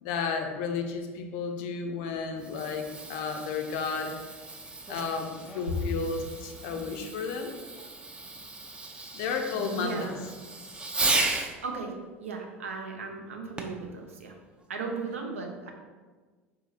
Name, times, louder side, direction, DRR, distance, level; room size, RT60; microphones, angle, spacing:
voice 1, 0.0-4.1 4.9-7.5 9.1-10.1, left 5 dB, 60° left, 5 dB, 0.4 m, -32 dB
Fireworks, 2.2-11.6 13.6-13.9 14.6-14.7, right 3 dB, 15° right, 0.4 m, -35 dB
voice 2, 9.5-10.3 11.6-11.9 12.2-14.4 14.7-15.7, right 4 dB, 80° right, 2 dB, 0.5 m, -36 dB
3.9 x 2.8 x 2.4 m, 1.4 s
figure-of-eight pair, 75°, 7 cm